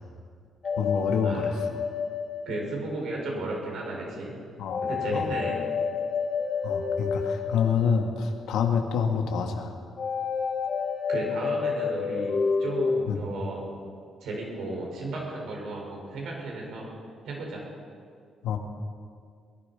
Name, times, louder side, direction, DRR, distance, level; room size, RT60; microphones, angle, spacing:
sound 1, 0.6-3.3 4.7-8.6 10.0-13.0, left 5 dB, 50° left, 1.0 m, -29 dB
voice 1, 0.8-1.6 4.6-4.8 5.1-5.3 6.6-9.7 13.1-13.2 18.4-18.6, left 6 dB, 85° left, 4 dB, 1.7 m, -27 dB
voice 2, 2.4-4.3 4.8-5.6 11.1-13.6 14.2-16.9 17.2-17.6, right 2 dB, 75° right, -1 dB, 5.1 m, -34 dB
21.5 x 12.0 x 5.7 m, 2.2 s
cardioid pair, 90°, 0 cm